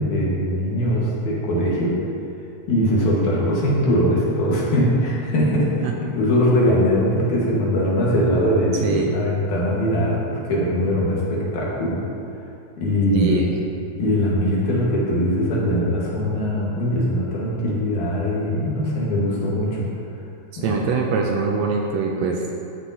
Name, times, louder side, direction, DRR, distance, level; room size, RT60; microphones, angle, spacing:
voice 1, 0.0-2.0 2.7-12.0 12.8-13.3 14.0-19.9 20.6-20.8, equal, 80° left, -5 dB, 3.0 m, -21 dB
voice 2, 8.8-9.1 13.1-13.6 20.6-22.4, right 5 dB, 80° right, 1 dB, 1.6 m, -23 dB
13.0 x 6.4 x 2.8 m, 2.6 s
omnidirectional pair, 3.5 m